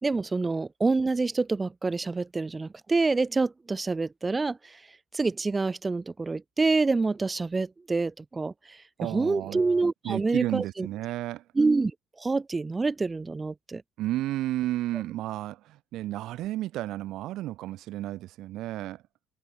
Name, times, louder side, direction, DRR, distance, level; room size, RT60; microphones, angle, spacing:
voice 1, 0.0-4.8 5.1-10.9 11.5-11.9 12.2-13.8, right 3 dB, 20° right, 1.3 m, -27 dB
voice 2, 9.0-9.6 10.0-11.4 14.0-19.0, right 15 dB, 65° right, 1.6 m, -32 dB
supercardioid pair, 85°, 0 cm